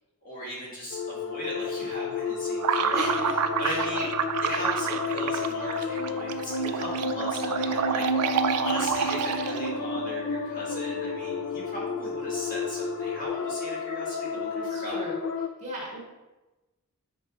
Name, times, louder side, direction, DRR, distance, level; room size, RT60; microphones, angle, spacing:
voice 1, 0.2-3.0 3.6-4.0 4.4-8.0 8.6-15.0, equal, 40° left, -6 dB, 1.8 m, -37 dB
sound 1, 0.9-15.5, left 4 dB, 60° left, 0.4 m, -31 dB
sound 2, 2.6-9.8, right 7 dB, 85° right, 0.4 m, -29 dB
sound 3, 2.9-13.3, equal, 10° right, 1.0 m, -44 dB
voice 2, 2.9-3.3 3.6-4.1 4.8-4.9 14.5-15.2 15.6-16.0, right 2 dB, 30° right, -5 dB, 1.7 m, -37 dB
9.9 x 3.9 x 2.4 m, 1.1 s
head